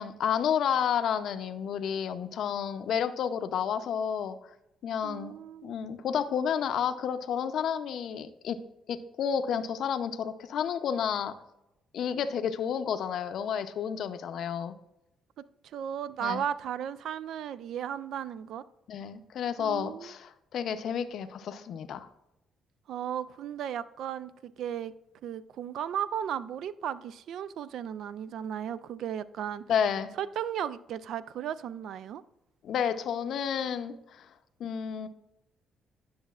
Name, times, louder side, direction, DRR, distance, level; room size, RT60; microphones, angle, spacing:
voice 1, 0.0-4.4 4.8-5.3 5.6-8.6 8.9-11.3 11.9-14.7 16.2-16.4 18.9-22.1 29.7-30.1 32.6-34.3 34.6-35.1, left 8 dB, 70° left, 10 dB, 0.5 m, -31 dB
voice 2, 5.0-5.8 15.4-15.5 15.7-18.6 19.6-20.1 22.9-24.9 25.2-29.6 30.2-32.2, right 9 dB, 75° right, 16 dB, 0.3 m, -35 dB
10.0 x 6.2 x 2.4 m, 0.88 s
cardioid pair, 90°, 0 cm